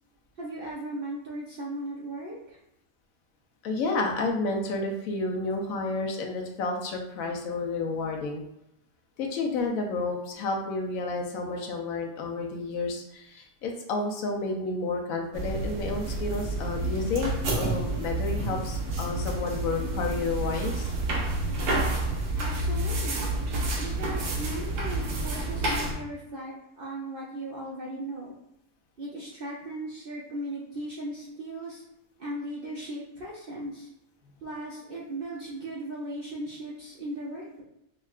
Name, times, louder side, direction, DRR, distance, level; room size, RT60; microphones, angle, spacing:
voice 1, 0.4-2.6 22.4-23.3 23.8-28.3 29.0-31.8 32.2-33.9 34.4-37.6, right 1 dB, 60° right, -4 dB, 0.5 m, -37 dB
voice 2, 3.6-8.4 9.2-20.9, left 3 dB, 70° left, 2 dB, 1.0 m, -31 dB
sound 1, 15.3-25.9, right 2 dB, 90° right, 1.3 m, -29 dB
5.3 x 2.2 x 2.3 m, 0.83 s
omnidirectional pair, 1.6 m